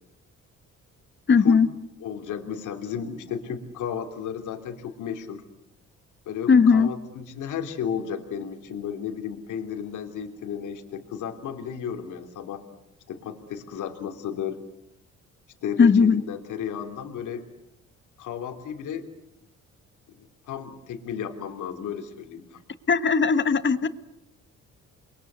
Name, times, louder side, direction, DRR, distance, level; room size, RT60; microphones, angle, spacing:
voice 1, 1.3-1.7 6.5-6.9 15.8-16.2 22.9-23.9, left 5 dB, 40° left, 12 dB, 1.6 m, -18 dB
voice 2, 2.0-5.4 6.3-12.6 13.1-14.6 15.6-17.4 18.2-19.0 20.2-22.6, left 8 dB, 80° left, 5 dB, 3.2 m, -33 dB
29.5 x 22.5 x 8.2 m, 0.80 s
cardioid pair, 90°, 30 cm